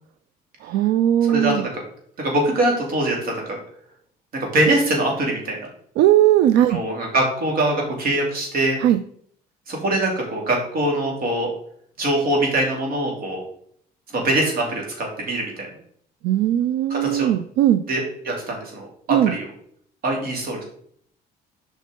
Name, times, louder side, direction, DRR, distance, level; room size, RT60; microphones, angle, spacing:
voice 1, 0.6-1.6 6.0-6.8 8.8-9.0 16.2-17.8 19.1-19.3, right 12 dB, 80° right, 11 dB, 0.4 m, -18 dB
voice 2, 1.2-1.8 2.2-3.6 4.4-5.6 6.7-8.8 9.7-11.5 12.0-13.4 14.1-15.7 16.9-17.3 17.9-19.5 20.0-20.6, right 1 dB, 60° right, 0 dB, 2.7 m, -23 dB
7.4 x 5.1 x 3.8 m, 0.63 s
cardioid pair, 110°, 17 cm